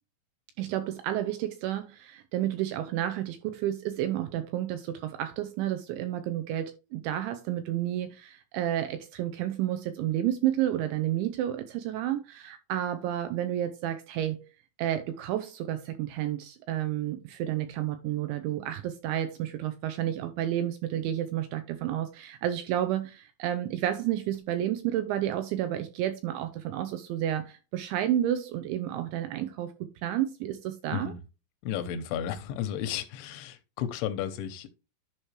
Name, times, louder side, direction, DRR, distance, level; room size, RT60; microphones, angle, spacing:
voice 1, 0.6-14.5 14.8-29.7 30.0-31.1, right 12 dB, 80° right, 2.7 m, -31 dB
voice 2, 31.6-34.7, left 9 dB, 85° left, 2.8 m, -33 dB
11.0 x 5.1 x 3.1 m
omnidirectional pair, 6.0 m